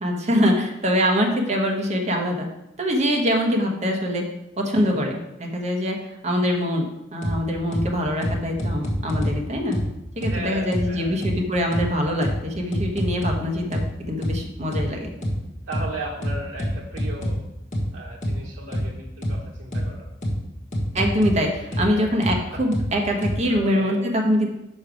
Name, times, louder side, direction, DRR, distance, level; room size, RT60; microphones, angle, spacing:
voice 1, 0.0-2.5 2.8-4.2 4.6-6.0 6.2-9.8 10.2-15.1 20.9-24.5, equal, 35° right, 1 dB, 1.1 m, -23 dB
voice 2, 4.8-5.1 10.2-11.2 15.7-17.4 17.9-20.1 21.7-22.0 22.3-22.6 23.1-23.9, right 2 dB, 90° right, -3 dB, 1.0 m, -36 dB
sound 1, 7.2-7.3 7.7-7.8 8.2-9.3 9.7-9.8 10.2-10.3 10.7-10.8 11.2-11.3 11.7-11.8 12.2-12.3 12.7-13.3 13.7-13.8 14.2-14.3 14.7-14.8 15.2-15.3 15.7-15.8 16.2-17.3 17.7-17.8 18.2-18.3 18.7-18.8 19.2-19.3 19.7-19.8 20.2-20.3 20.7-21.3 21.7-21.8 22.2-22.3 22.7-22.8 23.2-23.3, equal, 40° left, 1.5 m, -25 dB
6.3 x 5.4 x 4.9 m, 0.88 s
head